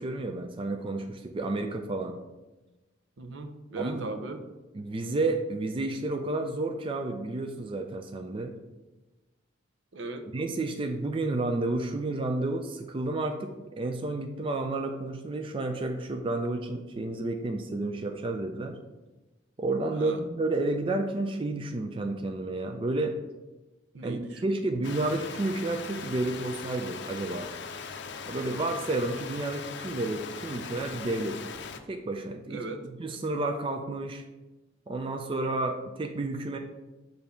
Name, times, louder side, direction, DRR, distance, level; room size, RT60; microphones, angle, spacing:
voice 1, 0.0-2.2 3.8-4.1 4.7-8.5 10.3-18.8 19.6-23.2 24.0-27.5 28.3-31.4 31.9-32.6 33.0-34.2 34.9-36.6, right 2 dB, 30° right, 4 dB, 0.4 m, -31 dB
voice 2, 3.2-4.4 9.9-10.3 19.9-20.2 23.9-25.0 32.5-32.9, right 2 dB, 70° right, 6 dB, 0.6 m, -38 dB
sound 1, 24.8-31.8, left 5 dB, 65° left, 0.5 m, -40 dB
6.8 x 2.7 x 5.5 m, 1.1 s
head